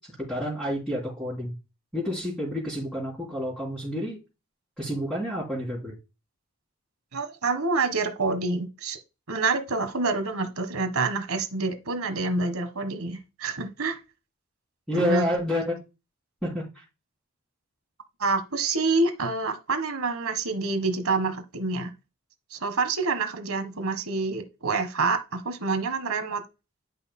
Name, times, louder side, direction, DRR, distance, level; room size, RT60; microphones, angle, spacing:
voice 1, 0.2-1.5 1.9-4.2 4.8-6.0 14.9-15.7 16.4-16.8, equal, 5° right, 3.1 m, -29 dB
voice 2, 7.1-9.0 9.3-14.0 14.9-15.2 18.2-21.9 22.5-26.4, right 3 dB, 90° right, 1.5 m, -27 dB
10.5 x 5.6 x 2.2 m
head